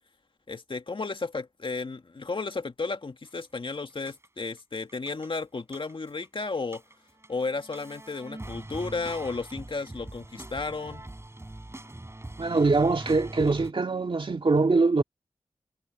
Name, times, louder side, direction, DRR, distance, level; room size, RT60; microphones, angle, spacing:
voice 1, 0.5-6.8 7.3-11.0, left 3 dB, 50° left, 2.1 m, -33 dB
sound 1, 3.4-3.6 4.1-4.6 4.9-6.3 6.6-13.7, right 1 dB, 25° right, 5.1 m, -42 dB
voice 2, 12.4-15.0, right 3 dB, 50° right, 2.2 m, -23 dB
cardioid pair, 45°, 11 cm